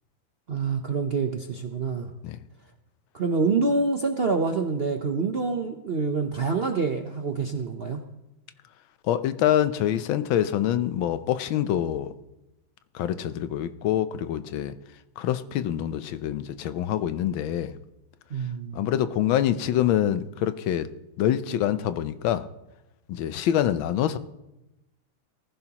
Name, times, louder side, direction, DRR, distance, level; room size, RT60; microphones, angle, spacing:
voice 1, 0.5-2.1 3.1-8.0 18.3-18.8, right 4 dB, 60° right, 4 dB, 0.6 m, -26 dB
voice 2, 9.0-12.1 12.9-14.7 15.2-17.8 18.7-20.9 21.2-22.5 23.1-24.2, left 11 dB, 90° left, 12 dB, 1.5 m, -25 dB
20.5 x 15.0 x 2.9 m, 0.97 s
omnidirectional pair, 2.1 m